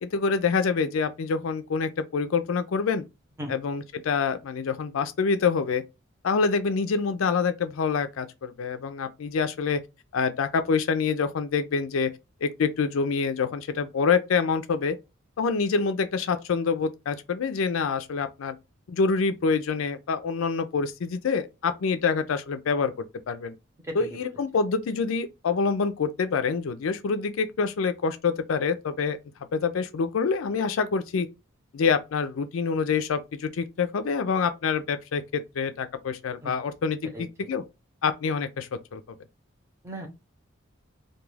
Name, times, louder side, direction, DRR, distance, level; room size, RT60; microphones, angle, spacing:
voice 1, 0.0-3.0 3.5-5.8 6.2-9.8 10.1-12.1 12.4-15.0 15.4-18.6 18.9-23.5 24.0-29.2 29.5-31.3 31.7-37.6 38.0-39.0, left 5 dB, 85° left, 0.4 m, -26 dB
voice 2, 23.8-24.3 36.4-36.6 37.0-37.5 39.8-40.1, equal, 15° right, 0.7 m, -38 dB
2.3 x 2.3 x 3.1 m
head